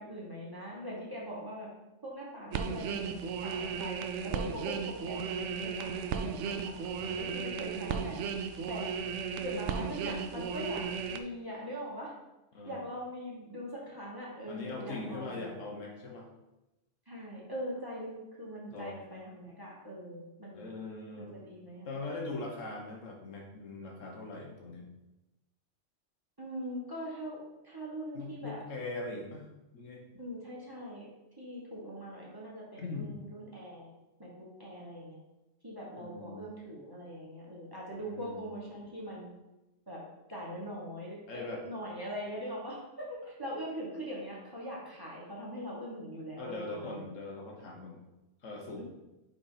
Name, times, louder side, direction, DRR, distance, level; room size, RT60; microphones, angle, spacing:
voice 1, 0.0-1.7 2.0-3.1 3.4-6.7 7.2-8.2 8.7-9.0 9.4-12.1 12.6-15.5 17.1-20.7 21.2-21.9 26.4-28.6 30.2-31.1 31.4-33.9 34.2-35.2 35.6-39.3 39.9-40.0 40.3-47.1 48.8-48.9, equal, 20° right, -5 dB, 1.4 m, -42 dB
sound 1, 2.5-11.2, right 6 dB, 75° right, 0.8 m, -35 dB
voice 2, 6.8-7.2 12.5-12.8 14.5-16.3 18.7-18.9 20.5-21.5 21.9-24.9 28.1-29.5 29.7-30.0 32.8-33.1 36.0-36.5 38.0-38.5 41.3-41.6 46.4-48.0 48.4-48.8, left 2 dB, 80° left, 1 dB, 1.6 m, -41 dB
5.0 x 4.4 x 5.0 m, 1.0 s
omnidirectional pair, 1.3 m